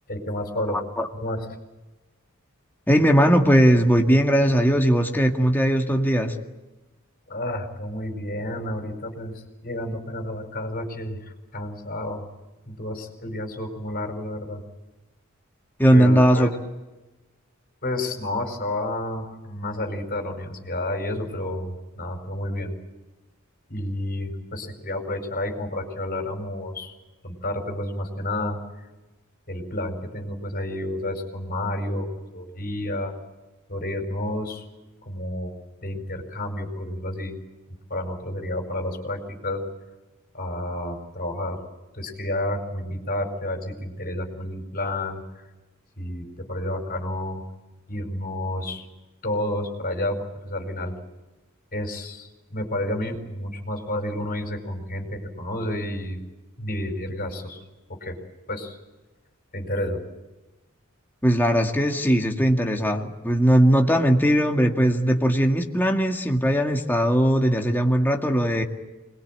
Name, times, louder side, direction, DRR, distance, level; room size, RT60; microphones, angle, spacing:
voice 1, 0.1-0.8 1.1-1.5 7.3-11.2 11.5-12.3 12.7-14.6 15.9-16.6 17.8-22.7 23.7-27.0 27.2-28.6 29.5-32.1 32.3-33.1 33.7-34.6 35.0-35.5 35.8-37.4 37.9-39.6 40.3-41.6 41.9-45.2 46.0-47.4 47.9-48.8 49.2-50.9 51.7-56.2 56.6-57.6 57.9-58.2 58.5-58.8 59.5-60.0, left 1 dB, 45° left, 5 dB, 4.9 m, -30 dB
voice 2, 2.9-6.4 15.8-16.5 61.2-68.6, equal, 10° left, 2 dB, 2.0 m, -19 dB
25.5 x 21.5 x 9.0 m, 1.1 s
head